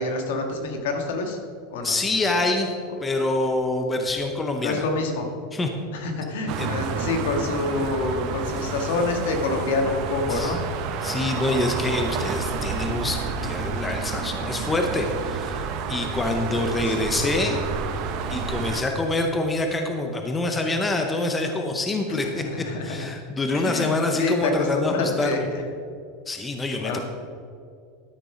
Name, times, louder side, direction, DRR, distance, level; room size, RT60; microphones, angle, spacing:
voice 1, 0.0-1.4 1.7-1.9 4.6-5.3 5.9-10.6 16.8-16.9 22.2-23.1 23.5-25.6 26.8-27.0, left 3 dB, 75° left, 3 dB, 1.7 m, -27 dB
voice 2, 1.8-2.7 3.0-4.8 5.5-5.7 6.6-6.7 10.3-10.6 11.0-17.6 18.3-22.4 22.8-25.5 26.3-27.0, left 2 dB, 10° left, 4 dB, 0.6 m, -26 dB
sound 1, 6.5-18.8, right 5 dB, 40° right, 0.8 m, -30 dB
12.5 x 6.6 x 5.0 m, 2.3 s
supercardioid pair, 170°, 0 cm